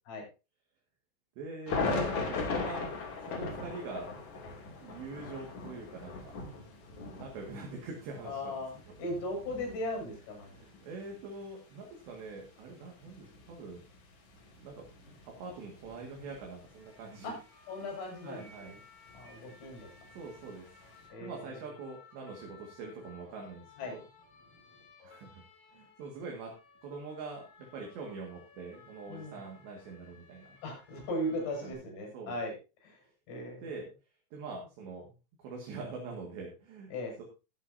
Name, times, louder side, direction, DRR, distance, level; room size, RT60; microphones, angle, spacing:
voice 1, 1.4-2.9 3.3-4.1 4.8-6.1 7.1-8.5 10.4-13.8 14.6-17.4 18.2-18.7 20.2-20.7 21.2-24.0 25.0-25.4 25.7-26.5 26.8-30.6 31.6-31.7 32.1-32.4 33.6-33.9 34.3-35.1 35.4-36.9 37.2-37.3, right 4 dB, 65° right, 0 dB, 4.0 m, -44 dB
sound 1, 1.7-16.8 17.2-17.3 18.6-21.1, left 4 dB, 45° left, 3.5 m, -40 dB
voice 2, 8.2-8.7 9.0-10.5 17.2-17.3 17.7-18.8 19.1-19.9 21.1-21.6 23.8-24.0 29.1-29.4 30.6-32.6 32.8-33.0 33.3-33.7 36.9-37.1, left 1 dB, 65° left, 1 dB, 8.6 m, -37 dB
sound 2, 16.7-31.7, left 4 dB, 25° left, 8.7 m, -59 dB
20.0 x 8.1 x 2.8 m, 0.30 s
omnidirectional pair, 5.8 m